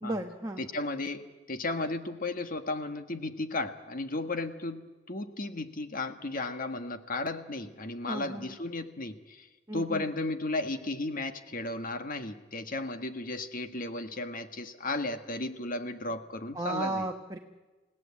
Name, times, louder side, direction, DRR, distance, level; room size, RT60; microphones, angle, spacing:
voice 1, 0.0-0.6 8.0-8.5 9.7-10.1 16.5-17.4, right 2 dB, 15° right, 2 dB, 1.1 m, -34 dB
voice 2, 0.6-9.5 9.7-17.1, left 2 dB, 45° left, 8 dB, 1.5 m, -34 dB
29.5 x 17.0 x 8.4 m, 1.2 s
head